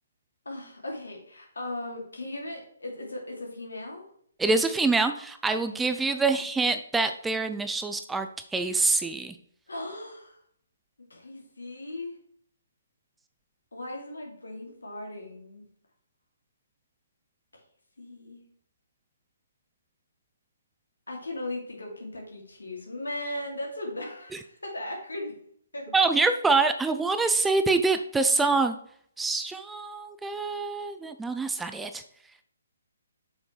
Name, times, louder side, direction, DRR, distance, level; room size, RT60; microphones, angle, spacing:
voice 1, 0.4-4.0 5.7-5.8 6.0-6.1 9.7-10.4 11.1-12.1 13.7-15.6 18.0-18.4 21.1-25.4 25.7-25.9, left 1 dB, 90° left, 0 dB, 2.6 m, -37 dB
voice 2, 4.4-9.4 25.9-28.8 29.2-32.0, right 3 dB, 5° right, 8 dB, 0.4 m, -25 dB
7.6 x 5.9 x 3.3 m, 0.64 s
figure-of-eight pair, 140°, 0 cm